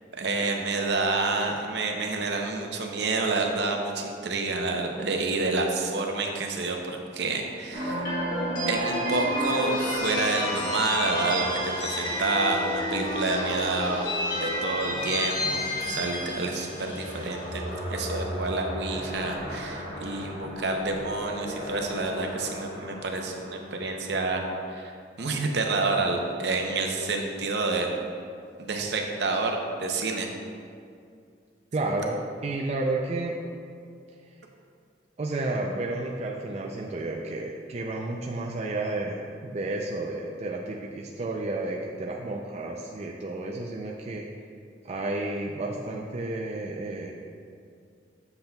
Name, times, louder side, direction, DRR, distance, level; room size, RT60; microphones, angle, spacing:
voice 1, 0.1-8.1 8.7-15.6 15.9-17.6 17.9-27.9 28.6-30.3, right 3 dB, 65° right, 2 dB, 0.7 m, -28 dB
sound 1, 7.7-23.9, equal, 50° left, 1.6 m, -31 dB
voice 2, 31.7-33.3 35.2-44.3 44.8-47.1, right 2 dB, 35° right, -1 dB, 0.4 m, -31 dB
7.8 x 6.9 x 2.3 m, 2.3 s
head